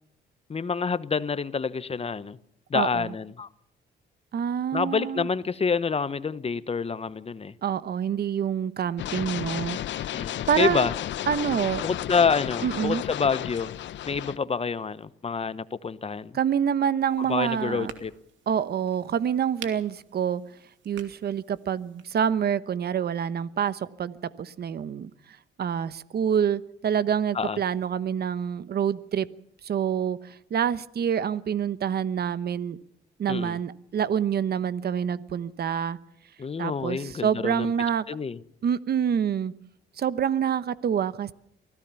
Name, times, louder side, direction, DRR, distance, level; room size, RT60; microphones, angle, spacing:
voice 1, 0.5-2.4 2.7-3.5 4.7-7.5 10.1-10.9 11.8-13.7 14.1-16.4 17.2-18.1 27.3-27.6 33.3-33.6 36.4-37.7 38.1-38.4, left 5 dB, 30° left, 1.0 m, -27 dB
voice 2, 2.7-3.1 4.3-5.3 7.6-10.1 10.5-10.9 11.3-11.8 12.6-13.0 16.3-17.9 18.5-20.4 20.8-25.1 25.6-29.3 29.6-32.8 33.2-36.0 36.6-38.1 38.6-39.5 40.0-41.3, right 8 dB, 55° right, 1.0 m, -27 dB
sound 1, 9.0-14.4, left 12 dB, 70° left, 0.8 m, -33 dB
sound 2, 17.0-22.3, right 8 dB, 75° right, 2.6 m, -48 dB
24.0 x 16.5 x 7.1 m
cardioid pair, 90°, 20 cm